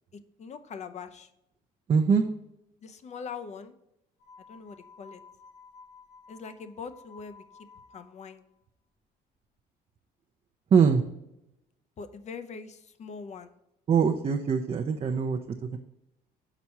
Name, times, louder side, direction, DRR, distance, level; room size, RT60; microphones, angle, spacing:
voice 1, 0.4-1.3 2.8-3.7 4.5-5.2 6.3-7.4 7.9-8.4 12.0-13.5, left 5 dB, 40° left, 10 dB, 0.7 m, -42 dB
voice 2, 1.9-2.2 10.7-11.0 13.9-15.8, right 6 dB, 35° right, 4 dB, 0.6 m, -23 dB
sound 1, 4.2-8.4, left 4 dB, 65° left, 1.7 m, -53 dB
6.0 x 4.2 x 5.6 m, 0.86 s
cardioid pair, 110°, 17 cm